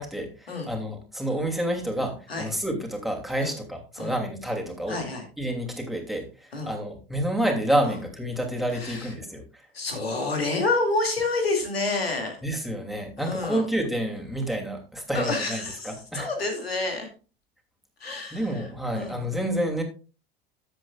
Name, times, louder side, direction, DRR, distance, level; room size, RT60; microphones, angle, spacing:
voice 1, 0.0-5.0 5.4-9.6 12.4-16.3 18.3-19.8, right 1 dB, ahead, 2 dB, 2.8 m, -29 dB
voice 2, 4.9-5.2 6.5-6.7 7.8-8.0 8.7-9.1 9.7-12.4 13.2-13.6 15.1-17.1 18.0-18.6 18.9-19.2, left 3 dB, 90° left, 3 dB, 2.5 m, -28 dB
13.5 x 7.9 x 2.4 m, 0.34 s
hypercardioid pair, 75°, 30 cm